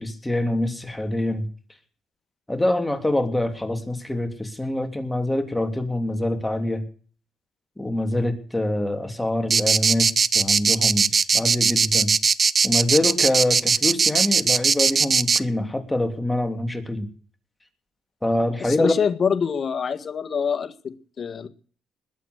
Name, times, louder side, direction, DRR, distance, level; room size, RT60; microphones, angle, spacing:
voice 1, 0.0-1.5 2.5-6.8 7.8-12.1 12.6-17.1 18.2-18.9, left 1 dB, 10° left, 6 dB, 3.2 m, -25 dB
sound 1, 9.5-15.4, right 5 dB, 40° right, 0.8 m, -19 dB
voice 2, 18.6-21.5, left 6 dB, 45° left, 11 dB, 1.8 m, -25 dB
21.0 x 8.3 x 8.1 m, 0.43 s
cardioid pair, 90°, 0 cm